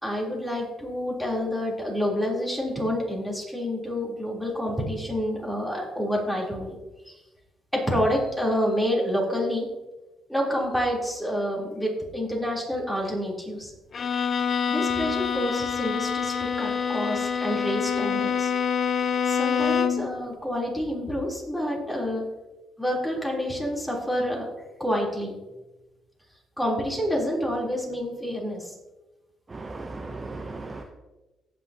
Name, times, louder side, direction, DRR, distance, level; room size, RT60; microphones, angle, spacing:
voice 1, 0.0-6.8 7.0-7.2 7.7-9.7 10.3-13.7 14.7-18.5 19.2-22.3 22.8-24.5 24.8-25.4 26.6-28.7, equal, 5° left, -3 dB, 3.6 m, -28 dB
Bowed string instrument, 13.9-20.1, left 6 dB, 45° left, 0.7 m, -26 dB
voice 2, 29.5-30.8, right 3 dB, 25° right, 4 dB, 0.8 m, -36 dB
17.5 x 6.1 x 2.9 m, 1.1 s
cardioid pair, 90°, 0 cm